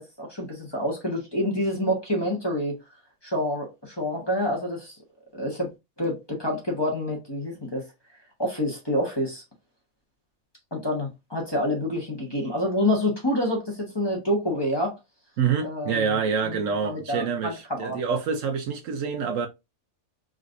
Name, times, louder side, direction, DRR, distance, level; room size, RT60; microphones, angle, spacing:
voice 1, 0.0-2.7 3.2-5.0 5.3-5.7 6.0-7.8 8.4-9.4 10.7-14.9 15.6-16.1 16.5-18.0, left 1 dB, 20° left, 1.1 m, -27 dB
voice 2, 15.4-19.5, right 6 dB, 70° right, 1.0 m, -26 dB
3.7 x 3.1 x 2.5 m
omnidirectional pair, 1.5 m